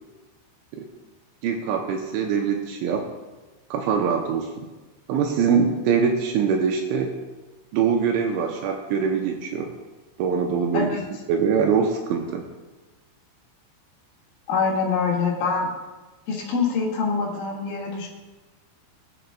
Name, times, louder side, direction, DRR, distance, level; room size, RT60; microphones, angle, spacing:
voice 1, 1.4-3.1 3.7-4.7 5.1-7.1 7.7-9.7 10.2-10.9 11.3-12.5, right 6 dB, 80° right, 3 dB, 2.9 m, -23 dB
voice 2, 10.7-11.0 14.5-15.7 16.3-18.1, left 5 dB, 75° left, -3 dB, 4.3 m, -24 dB
19.5 x 7.6 x 2.2 m, 1.2 s
omnidirectional pair, 5.8 m